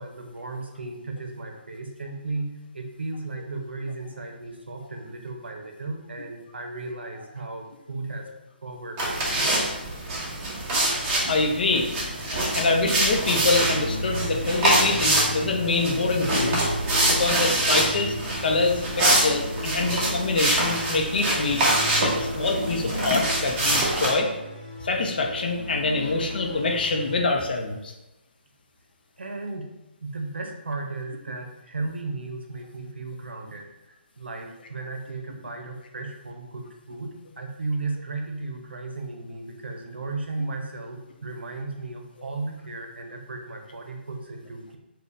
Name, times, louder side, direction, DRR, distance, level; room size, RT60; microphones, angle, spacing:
voice 1, 0.0-8.2 8.6-9.6 29.2-29.7 30.0-33.7 34.2-44.8, right 3 dB, 75° right, 3 dB, 0.7 m, -35 dB
sound 1, 9.0-24.1, right 1 dB, 25° right, 0.8 m, -25 dB
sound 2, 11.2-27.2, left 1 dB, 20° left, 1.5 m, -34 dB
voice 2, 11.3-11.9 12.3-16.6 17.1-18.2 18.4-21.7 22.0-24.3 24.8-27.9, left 3 dB, 55° left, 2 dB, 0.6 m, -25 dB
4.2 x 2.3 x 3.1 m, 0.96 s
figure-of-eight pair, 140°, 6 cm